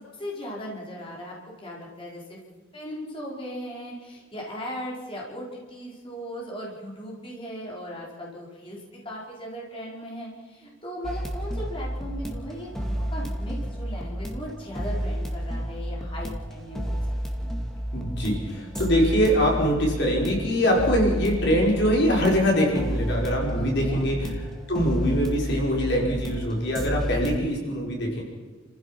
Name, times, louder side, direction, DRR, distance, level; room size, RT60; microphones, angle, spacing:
voice 1, 0.2-1.3 1.6-2.4 2.7-17.0 17.3-17.5 23.5-24.0, equal, 25° left, -3 dB, 5.3 m, -37 dB
sound 1, 11.0-27.4, equal, ahead, 2.2 m, -31 dB
voice 2, 17.9-24.2 24.7-28.2, equal, 55° left, -2 dB, 5.4 m, -23 dB
29.5 x 15.5 x 6.1 m, 1.4 s
head